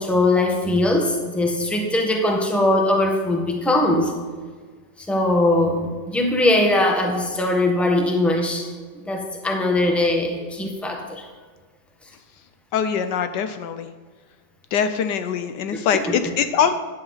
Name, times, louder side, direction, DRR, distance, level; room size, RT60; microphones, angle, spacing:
voice 1, 0.0-4.1 5.0-8.7 9.0-11.2 16.1-16.2, left 1 dB, ahead, 1 dB, 1.2 m, -21 dB
voice 2, 12.7-13.9 14.7-16.7, left 7 dB, 75° left, 10 dB, 1.2 m, -23 dB
13.0 x 9.7 x 4.0 m, 1.5 s
omnidirectional pair, 1.9 m